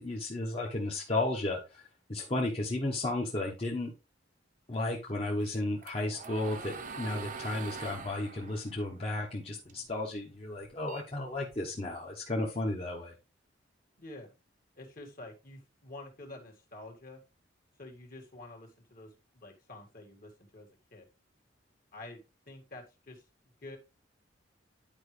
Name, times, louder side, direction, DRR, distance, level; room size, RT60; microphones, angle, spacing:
voice 1, 0.0-3.9 4.7-13.1, left 2 dB, 30° left, -3 dB, 1.3 m, -34 dB
sound 1, 5.4-9.9 10.3-11.9, right 5 dB, 45° right, 0.9 m, -44 dB
voice 2, 14.0-14.3 14.7-17.2 17.8-21.1 21.9-23.2 23.6-23.8, left 2 dB, 50° left, 2 dB, 2.1 m, -48 dB
10.5 x 4.9 x 3.3 m, 0.29 s
head